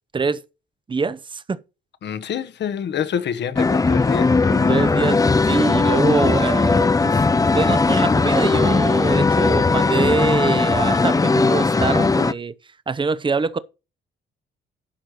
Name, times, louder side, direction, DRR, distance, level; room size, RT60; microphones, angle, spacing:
voice 1, 0.9-1.6 4.5-12.5 12.9-13.6, right 4 dB, 25° right, 0.8 m, -24 dB
voice 2, 2.0-4.9, left 8 dB, 60° left, 1.2 m, -27 dB
sound 1, 3.6-12.3, left 3 dB, 15° left, 0.6 m, -18 dB
11.5 x 4.6 x 6.5 m
cardioid pair, 90°, 20 cm